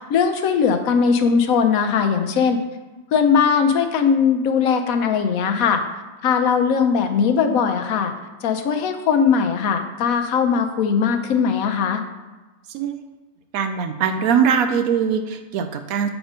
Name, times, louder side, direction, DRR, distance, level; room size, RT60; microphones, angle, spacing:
voice 1, 0.0-2.6 3.1-5.8 6.2-8.1 8.4-12.0, left 6 dB, 80° left, 6 dB, 1.2 m, -19 dB
voice 2, 13.5-16.1, right 7 dB, 90° right, 7 dB, 1.0 m, -21 dB
7.2 x 3.7 x 5.0 m, 1.2 s
omnidirectional pair, 1.4 m